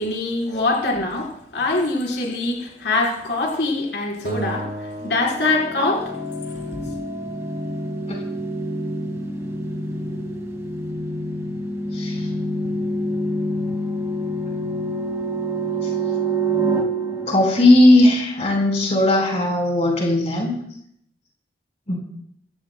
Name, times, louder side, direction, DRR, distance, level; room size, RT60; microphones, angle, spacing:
voice 1, 0.0-6.1 6.5-6.9, left 2 dB, 70° left, -2 dB, 4.3 m, -24 dB
Acoustic guitar, 4.2-6.6, right 1 dB, 55° right, 2.6 m, -34 dB
sound 1, 5.3-18.0, right 1 dB, 15° right, 2.3 m, -27 dB
voice 2, 11.9-12.3 17.3-20.5 21.9-22.0, left 1 dB, 40° left, -1 dB, 4.7 m, -17 dB
25.5 x 15.5 x 2.3 m, 0.73 s
head